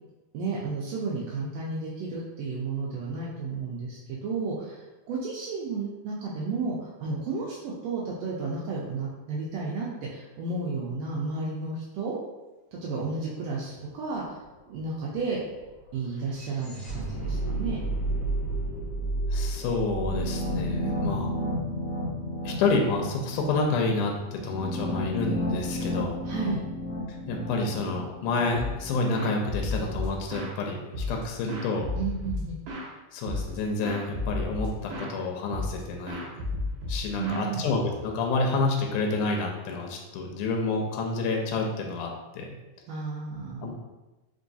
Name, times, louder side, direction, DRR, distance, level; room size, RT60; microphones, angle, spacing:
voice 1, 0.3-12.2 12.8-14.4 14.7-15.4 15.9-17.8 20.8-21.7 26.2-26.6 31.9-32.6 37.2-37.6 42.9-43.7, right 4 dB, 85° right, -4 dB, 1.5 m, -32 dB
sound 1, 13.4-13.5 13.8-22.0, right 2 dB, 65° left, 1.0 m, -33 dB
voice 2, 19.3-21.3 22.4-26.2 27.1-31.9 33.1-36.3 36.9-42.5 43.6-43.7, left 3 dB, 85° left, 1 dB, 2.0 m, -29 dB
sound 2, 20.0-28.9, left 1 dB, 45° left, 1.4 m, -33 dB
sound 3, 28.5-28.9 29.1-30.6 30.9-32.9 33.2-33.6 33.8-35.1 35.5-35.8 36.1-38.1, left 2 dB, 65° right, 1.5 m, -33 dB
4.5 x 3.1 x 2.6 m, 1.1 s
omnidirectional pair, 3.6 m